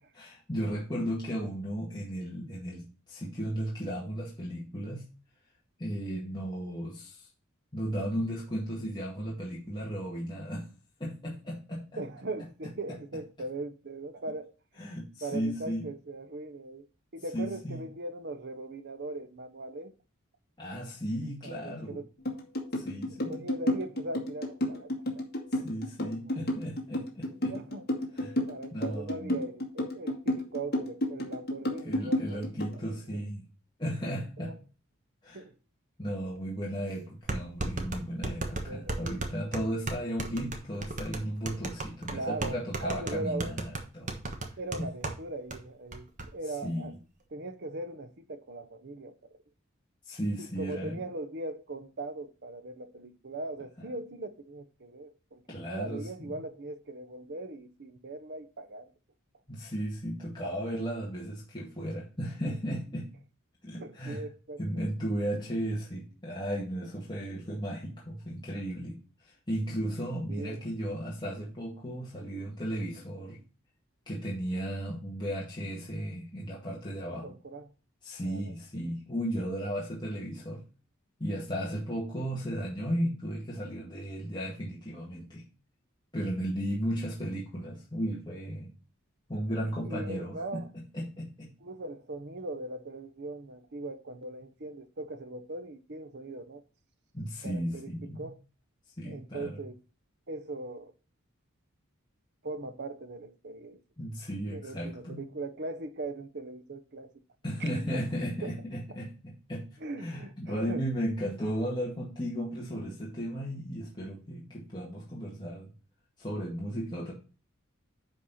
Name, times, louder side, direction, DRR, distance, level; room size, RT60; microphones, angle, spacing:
voice 1, 0.1-5.1 5.8-7.3 7.7-10.7 11.0-12.0 14.8-15.9 17.3-17.8 20.6-22.0 22.7-23.5 25.5-27.5 28.1-28.4 28.7-29.4 31.8-33.4 33.8-34.5 35.2-35.4 36.0-43.6 43.9-44.3 44.8-44.9 46.6-46.9 50.1-51.0 53.8-53.9 55.5-56.4 59.5-63.1 63.6-64.2 64.6-73.4 74.1-77.3 78.0-80.6 81.2-85.4 86.1-88.7 89.3-91.5 97.1-98.3 99.0-99.6 104.0-105.2 107.4-109.7 110.0-115.7 116.2-117.1, equal, 20° left, 2.0 m, -35 dB
voice 2, 12.0-14.5 15.2-16.9 17.1-19.9 21.4-22.1 23.1-25.2 25.5-25.7 26.0-26.4 27.3-32.6 32.8-33.2 34.4-34.6 35.3-35.5 36.8-37.1 38.6-39.3 39.6-39.8 42.1-43.5 44.6-46.9 47.3-49.2 50.4-58.9 63.8-64.8 65.5-65.6 70.3-70.7 77.1-77.7 78.2-78.5 89.8-90.7 91.6-96.6 97.4-98.4 99.1-99.8 100.3-100.9 102.4-103.8 104.5-107.1 107.9-108.0 108.4-108.5 109.8-110.9, right 2 dB, 55° right, 0.9 m, -40 dB
sound 1, 22.2-32.8, left 1 dB, 50° left, 2.2 m, -31 dB
sound 2, 36.4-36.5 37.3-45.2 45.5-45.6 45.9-46.3, right 2 dB, 35° right, 1.3 m, -35 dB
9.9 x 4.4 x 4.2 m
head